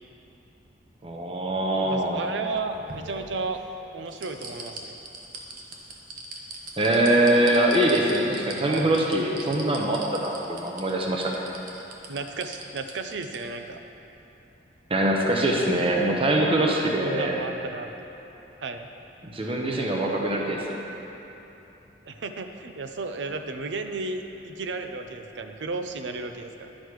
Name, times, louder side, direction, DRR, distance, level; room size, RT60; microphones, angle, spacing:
voice 1, 1.0-2.3 6.8-11.4 14.9-17.4 19.2-20.8, right 1 dB, 30° right, -1 dB, 0.8 m, -23 dB
voice 2, 1.8-3.6 3.9-5.0 8.7-8.9 12.1-13.8 17.0-18.1 18.6-18.9 22.0-26.7, right 3 dB, 80° right, 6 dB, 0.6 m, -34 dB
sound 1, 2.3-3.7 4.1-13.4 13.7-13.8, right 3 dB, 50° right, 1.0 m, -40 dB
11.0 x 6.4 x 4.7 m, 3.0 s
head